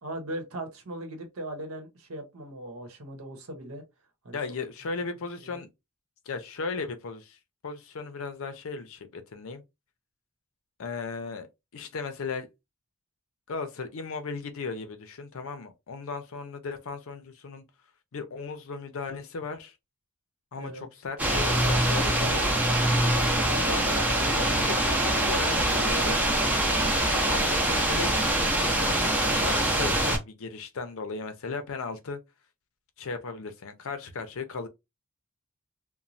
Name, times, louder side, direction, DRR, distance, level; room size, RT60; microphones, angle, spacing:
voice 1, 0.0-3.8 4.2-4.4 5.4-5.6 20.5-20.8, right 1 dB, 70° right, 0.9 m, -39 dB
voice 2, 4.3-5.7 6.3-7.4 7.6-9.6 10.8-11.5 11.7-12.5 13.5-17.6 18.1-19.7 20.5-22.5 23.5-26.2 27.2-32.2 33.0-34.7, left 4 dB, 65° left, 0.5 m, -36 dB
sound 1, 21.2-30.2, right 1 dB, 5° right, 0.6 m, -24 dB
3.0 x 2.1 x 2.5 m
head